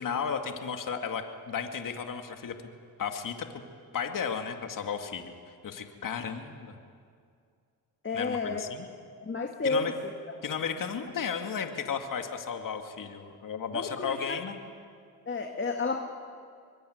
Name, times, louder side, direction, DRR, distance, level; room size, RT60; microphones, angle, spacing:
voice 1, 0.0-2.5 3.0-3.5 3.9-5.4 5.6-6.8 8.1-8.9 9.6-10.0 10.4-14.6, left 6 dB, 55° left, 5 dB, 2.4 m, -34 dB
voice 2, 8.0-8.6 9.2-10.1 13.7-14.4 15.3-16.0, left 4 dB, 30° left, 3 dB, 2.1 m, -31 dB
24.0 x 21.0 x 9.5 m, 2.3 s
cardioid pair, 75°, 39 cm